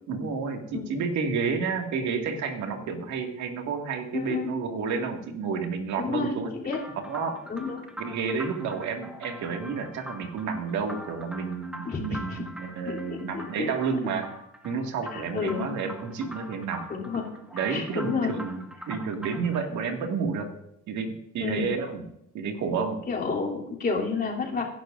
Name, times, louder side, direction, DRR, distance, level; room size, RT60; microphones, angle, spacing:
voice 1, 0.1-6.5 7.1-7.4 8.0-14.3 14.6-16.8 17.5-20.5 20.9-22.1 22.3-23.0, right 5 dB, 70° right, 3 dB, 2.1 m, -30 dB
voice 2, 4.1-4.5 6.0-6.8 7.5-7.8 11.8-12.4 12.9-13.7 15.1-15.7 16.9-17.3 17.7-18.3 21.4-21.7 23.1-24.6, left 4 dB, 30° left, -3 dB, 3.2 m, -30 dB
sound 1, 6.7-19.6, equal, 5° right, 1.7 m, -44 dB
22.0 x 11.0 x 2.6 m, 0.77 s
cardioid pair, 120°, 30 cm